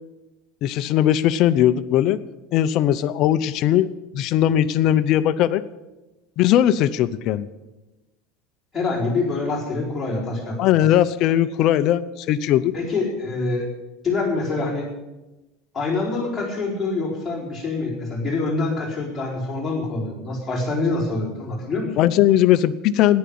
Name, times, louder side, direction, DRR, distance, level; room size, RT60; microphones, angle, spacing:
voice 1, 0.6-2.2 2.5-3.9 4.1-5.6 6.4-7.5 10.6-12.7 22.0-23.2, left 12 dB, 40° left, 12 dB, 0.6 m, -19 dB
voice 2, 8.7-10.6 12.7-13.7 14.0-14.9 15.7-22.0, left 3 dB, 5° left, -6 dB, 4.5 m, -25 dB
14.0 x 10.5 x 8.6 m, 1.1 s
cardioid pair, 175°, 0 cm